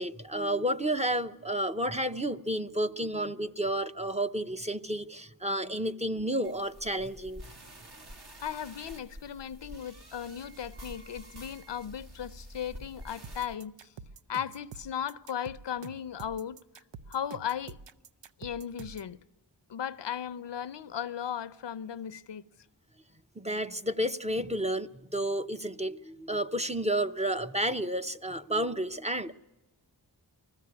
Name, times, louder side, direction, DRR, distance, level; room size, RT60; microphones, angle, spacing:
voice 1, 0.0-7.4 23.4-29.3, right 1 dB, 15° right, 0.6 m, -31 dB
sound 1, 6.4-13.5, equal, 65° right, 2.1 m, -48 dB
voice 2, 8.4-13.9 14.3-16.6 17.1-17.8 18.4-19.2 19.7-22.4, left 9 dB, 75° left, 0.6 m, -36 dB
sound 2, 13.2-19.1, right 6 dB, 80° right, 0.7 m, -47 dB
20.0 x 14.5 x 9.5 m
wide cardioid pair, 60°, 43 cm